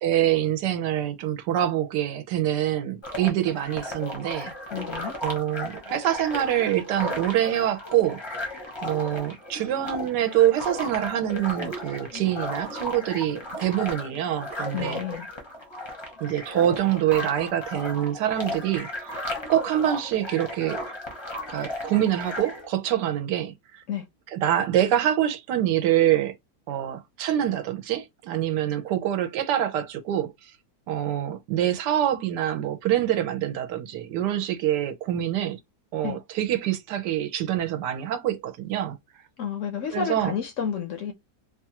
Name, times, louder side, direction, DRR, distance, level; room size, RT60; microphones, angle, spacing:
voice 1, 0.0-4.5 5.2-8.2 8.8-15.0 16.2-19.2 19.5-20.8 21.5-23.8 24.3-26.4 26.7-30.5 30.9-35.6 35.9-39.0 39.9-40.3, right 11 dB, 80° right, 1.2 m, -25 dB
sound 1, 3.0-22.7, left 1 dB, 30° left, 0.5 m, -35 dB
voice 2, 4.7-5.2 14.7-15.3 23.9-24.1 36.0-36.2 39.4-41.1, left 7 dB, 65° left, 0.8 m, -30 dB
3.0 x 2.3 x 2.7 m
omnidirectional pair, 1.8 m